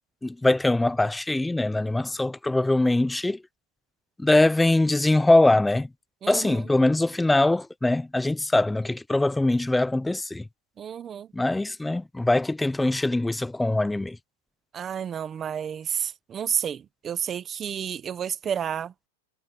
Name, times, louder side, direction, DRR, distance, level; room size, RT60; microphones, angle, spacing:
voice 1, 0.2-3.4 4.2-5.9 6.3-10.4 11.3-14.2, left 2 dB, 5° left, 0.5 m, -22 dB
voice 2, 6.2-6.6 10.8-11.3 14.7-18.9, right 8 dB, 15° right, 0.9 m, -30 dB
supercardioid pair, 175°, 0 cm